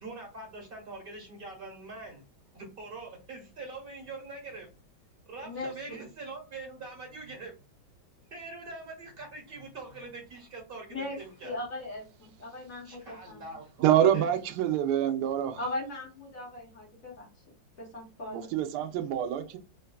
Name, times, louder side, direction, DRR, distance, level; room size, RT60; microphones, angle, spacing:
voice 1, 0.0-2.2 2.5-4.7 5.3-7.5 8.3-11.6 12.8-14.3, right 3 dB, 35° right, 1.2 m, -43 dB
voice 2, 5.4-6.0 10.9-11.2 11.4-13.4 15.6-17.3 17.8-18.5, left 2 dB, 45° left, 1.6 m, -38 dB
voice 3, 13.8-15.6 18.3-19.6, right 10 dB, 70° right, 1.0 m, -26 dB
4.0 x 2.2 x 2.3 m
omnidirectional pair, 2.1 m